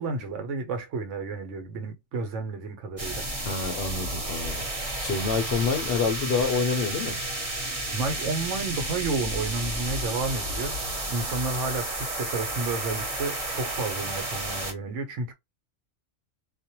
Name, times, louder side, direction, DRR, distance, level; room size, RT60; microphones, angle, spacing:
voice 1, 0.0-3.3 7.9-10.8 11.1-15.3, right 3 dB, 70° right, 1.0 m, -31 dB
sound 1, 3.0-14.7, right 1 dB, 30° right, 1.0 m, -32 dB
voice 2, 3.5-7.2, left 4 dB, 60° left, 0.7 m, -27 dB
2.5 x 2.1 x 2.8 m
omnidirectional pair, 1.3 m